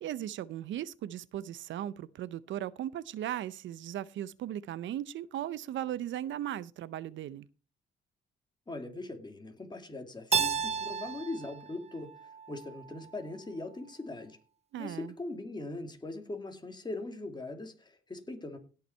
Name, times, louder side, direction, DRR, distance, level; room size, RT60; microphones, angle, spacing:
voice 1, 0.0-7.5 14.7-15.1, right 11 dB, 70° right, 0.6 m, -37 dB
voice 2, 8.7-14.4 14.8-18.6, left 2 dB, 20° left, 2.6 m, -41 dB
Keyboard (musical), 10.3-13.1, right 6 dB, 35° right, 0.6 m, -33 dB
17.0 x 5.8 x 4.4 m
cardioid pair, 90°, 20 cm